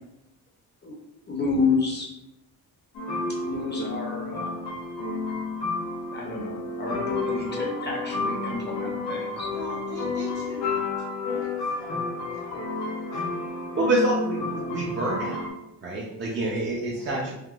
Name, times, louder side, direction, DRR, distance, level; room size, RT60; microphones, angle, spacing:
voice 1, 1.3-2.2 3.4-4.6 6.1-9.5, left 4 dB, 25° left, -2 dB, 0.6 m, -29 dB
sound 1, 2.9-15.5, left 3 dB, 90° left, 0.9 m, -31 dB
voice 2, 9.5-10.9 11.2-12.6 13.1-13.2 16.9-17.1, right 2 dB, 65° right, -4 dB, 1.5 m, -42 dB
voice 3, 13.8-15.4 15.8-17.3, right 2 dB, 30° right, -4 dB, 0.5 m, -27 dB
3.5 x 2.6 x 2.4 m, 0.89 s
cardioid pair, 130°, 40 cm